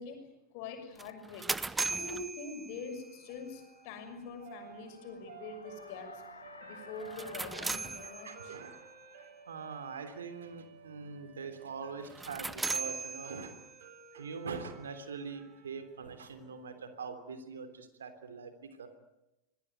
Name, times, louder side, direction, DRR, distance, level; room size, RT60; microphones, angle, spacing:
voice 1, 0.0-1.5 1.9-6.2 6.6-8.6, left 4 dB, 45° left, 7 dB, 6.3 m, -44 dB
sound 1, 1.0-3.2 7.0-8.7 12.0-13.8, right 3 dB, 10° right, 0.9 m, -38 dB
sound 2, 2.4-11.1, left 4 dB, 75° left, 1.5 m, -55 dB
sound 3, 3.3-17.4, right 7 dB, 50° right, 4.5 m, -55 dB
voice 2, 8.0-8.9 9.2-18.9, right 5 dB, 65° right, 9 dB, 3.3 m, -43 dB
26.0 x 20.0 x 9.4 m, 0.93 s
figure-of-eight pair, 90°, 0 cm